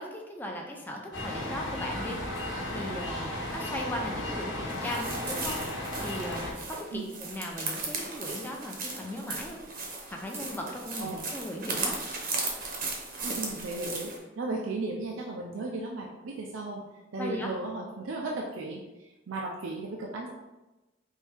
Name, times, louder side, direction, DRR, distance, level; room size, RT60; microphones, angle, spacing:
voice 1, 0.0-2.2 2.7-9.6 10.1-12.0 17.2-17.5, left 1 dB, 10° left, 0 dB, 0.5 m, -38 dB
sound 1, 1.1-6.5, left 1 dB, 75° left, 1.0 m, -35 dB
sound 2, 4.7-14.2, right 3 dB, 45° right, 0.7 m, -36 dB
voice 2, 13.2-16.8 17.1-20.3, right 2 dB, 85° right, -1 dB, 0.5 m, -35 dB
4.4 x 2.7 x 3.4 m, 1.1 s
head